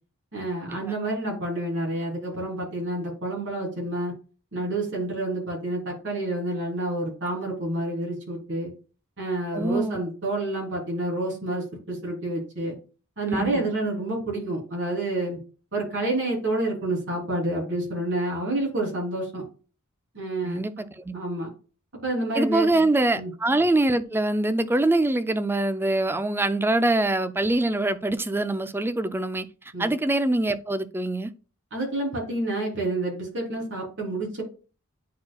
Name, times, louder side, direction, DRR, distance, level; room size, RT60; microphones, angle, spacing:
voice 1, 0.3-4.1 4.5-8.7 9.2-12.7 13.2-15.4 15.7-19.4 20.1-20.8 21.1-21.5 22.0-22.8 23.1-23.3 29.7-29.9 31.7-34.4, right 1 dB, 55° right, 3.4 m, -29 dB
voice 2, 9.5-10.0 13.3-13.6 20.4-21.1 22.3-29.5 29.8-31.3, right 2 dB, 10° right, 0.4 m, -24 dB
9.3 x 4.5 x 2.3 m
head